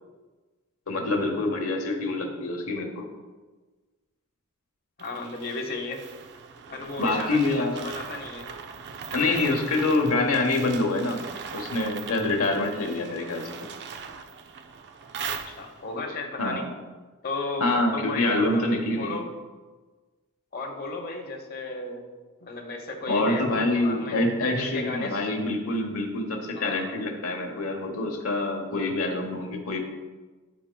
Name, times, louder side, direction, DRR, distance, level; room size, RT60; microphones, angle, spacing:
voice 1, 0.9-3.1 7.0-7.9 9.1-11.2 11.5-13.7 16.4-16.7 17.6-19.2 23.1-29.8, left 2 dB, 65° left, 2 dB, 1.1 m, -26 dB
voice 2, 5.0-6.0 6.7-8.5 15.3-16.7 17.2-19.3 20.5-22.0 22.4-25.2 26.5-26.9, left 3 dB, 45° left, 2 dB, 0.9 m, -35 dB
sound 1, 5.0-16.0, right 6 dB, 50° right, 0.4 m, -40 dB
10.0 x 4.2 x 2.2 m, 1.3 s
head